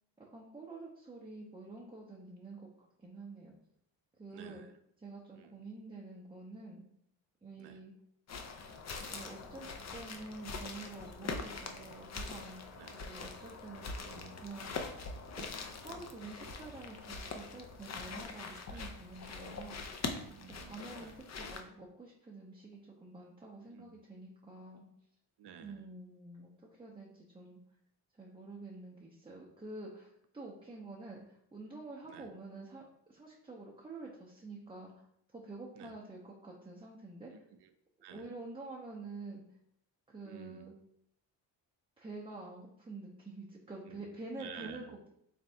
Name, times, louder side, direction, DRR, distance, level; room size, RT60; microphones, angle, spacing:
voice 1, 0.2-3.5 4.2-4.6 5.0-6.8 7.4-7.9 9.1-13.9 14.4-14.8 15.4-15.5 15.8-19.8 20.5-24.9 25.6-27.6 28.1-30.1 30.3-35.1 35.3-37.3 38.1-39.4 40.1-40.7 42.0-45.1, right 3 dB, 10° right, -3 dB, 0.6 m, -48 dB
voice 2, 4.3-4.7 5.3-5.6 7.6-7.8 12.8-13.0 14.0-14.4 18.7-18.9 20.1-21.1 23.7-24.0 25.4-25.9 32.1-32.3 35.8-35.9 37.3-37.7 38.0-38.3 40.2-40.7 43.8-44.0 44.4-44.9, right 8 dB, 60° right, 9 dB, 0.6 m, -52 dB
sound 1, 8.3-21.6, left 4 dB, 35° left, 0.6 m, -43 dB
3.3 x 3.2 x 2.7 m, 0.73 s
supercardioid pair, 55°, 47 cm